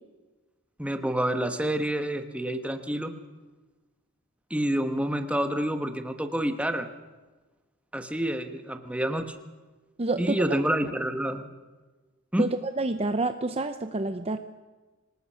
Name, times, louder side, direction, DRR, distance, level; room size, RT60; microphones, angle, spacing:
voice 1, 0.8-3.1 4.5-6.9 7.9-9.4 10.2-11.5 12.3-12.5, right 1 dB, 5° right, 7 dB, 1.3 m, -28 dB
voice 2, 10.0-10.6 12.4-14.4, right 2 dB, 30° right, 9 dB, 0.7 m, -28 dB
25.5 x 19.0 x 5.7 m, 1.3 s
head